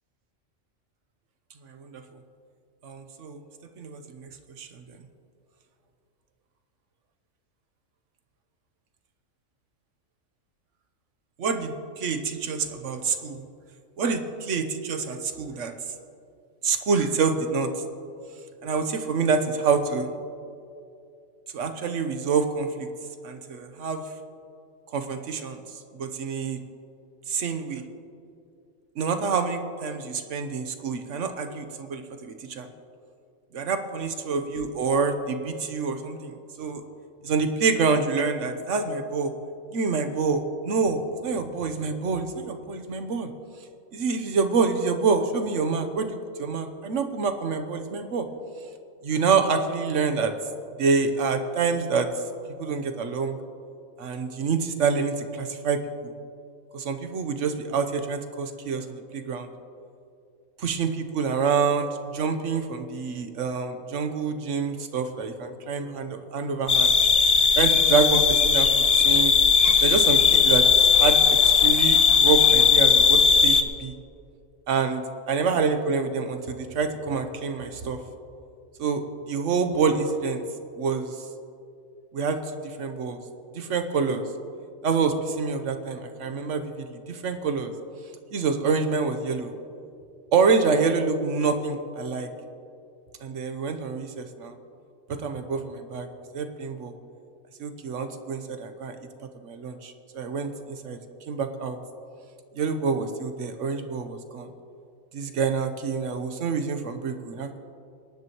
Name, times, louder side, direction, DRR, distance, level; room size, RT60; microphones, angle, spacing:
voice 1, 1.7-2.0 2.8-3.4 3.8-5.0 11.4-13.4 14.0-15.8 16.6-17.8 18.6-20.1 21.5-22.9 23.2-24.1 24.9-25.6 25.9-26.6 27.3-27.8 29.0-32.7 33.5-36.8 37.2-39.3 39.7-43.3 43.9-48.3 49.0-50.3 50.8-52.1 52.6-53.4 54.0-56.1 56.7-59.5 60.6-66.9 67.5-69.4 69.8-74.0 74.7-78.0 78.8-80.4 80.8-81.2 82.1-83.2 83.5-84.3 84.8-87.7 88.3-89.5 90.3-92.3 93.2-94.6 95.1-96.1 96.3-96.9 97.6-99.0 99.4-101.0 101.3-101.8 102.5-104.5 105.1-107.6, right 5 dB, 75° right, 8 dB, 1.2 m, -27 dB
sound 1, 66.7-73.6, left 6 dB, 45° left, 0.5 m, -18 dB
23.0 x 10.5 x 3.0 m, 2.5 s
omnidirectional pair, 1.3 m